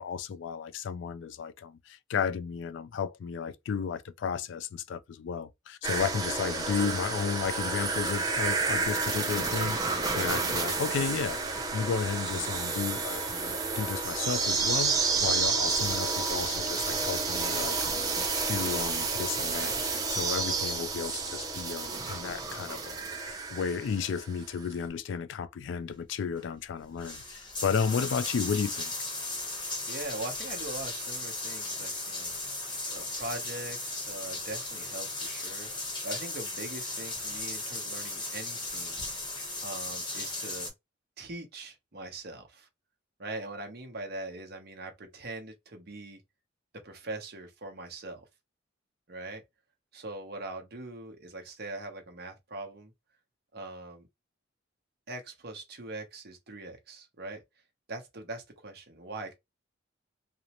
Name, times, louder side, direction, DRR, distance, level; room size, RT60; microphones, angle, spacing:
voice 1, 0.0-11.4 11.7-28.9, left 6 dB, 60° left, 0.3 m, -33 dB
sound 1, 5.8-24.4 24.6-24.7, right 4 dB, 20° right, 0.5 m, -30 dB
sound 2, 26.4-26.5 26.8-40.7, left 2 dB, 25° left, 0.8 m, -36 dB
voice 2, 29.9-32.6 32.8-35.7 36.0-39.0 39.6-40.7 41.2-42.7 43.2-46.2 46.8-48.2 49.1-49.4 49.9-52.9 53.5-54.1 55.1-57.4 57.9-59.3, right 2 dB, 50° right, 0.8 m, -41 dB
2.5 x 2.0 x 2.8 m
head